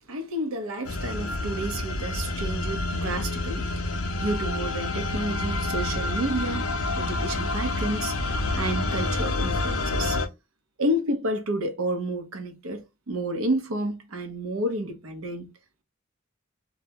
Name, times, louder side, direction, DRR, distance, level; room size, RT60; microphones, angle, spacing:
voice 1, 0.1-3.7 4.2-6.6 7.0-8.1 8.5-10.2 10.8-12.8 13.1-15.5, right 1 dB, 75° right, 0.6 m, -30 dB
sound 1, 0.8-10.3, left 2 dB, 75° left, 0.5 m, -28 dB
2.2 x 2.0 x 2.7 m
head